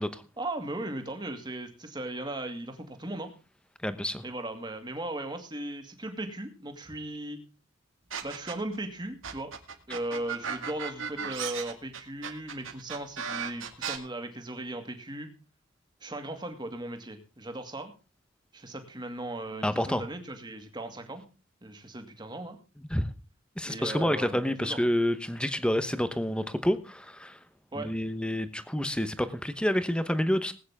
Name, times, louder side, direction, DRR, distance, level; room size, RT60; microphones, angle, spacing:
voice 1, 0.4-3.3 4.2-7.4 8.2-9.5 9.9-15.3 16.0-17.9 18.5-21.2 21.6-22.6 23.6-24.8 27.7-27.9, right 1 dB, 20° right, 6 dB, 2.2 m, -37 dB
voice 2, 3.8-4.2 19.6-20.0 22.9-23.1 23.6-27.4 27.7-30.5, equal, 5° left, 12 dB, 1.0 m, -28 dB
sound 1, 8.1-8.8 9.2-14.0, right 7 dB, 80° right, 2.1 m, -35 dB
19.5 x 9.4 x 3.6 m, 0.33 s
head